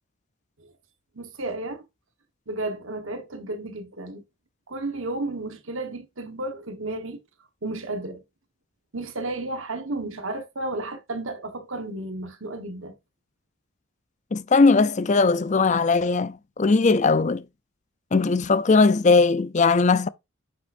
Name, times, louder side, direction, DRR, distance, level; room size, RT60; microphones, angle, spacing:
voice 1, 1.1-1.9 2.5-4.2 4.7-7.2 7.6-8.2 8.9-12.9, right 2 dB, 75° right, 1.4 m, -33 dB
voice 2, 14.3-17.4 18.1-20.1, left 4 dB, 35° left, 0.5 m, -19 dB
9.6 x 6.0 x 2.6 m
head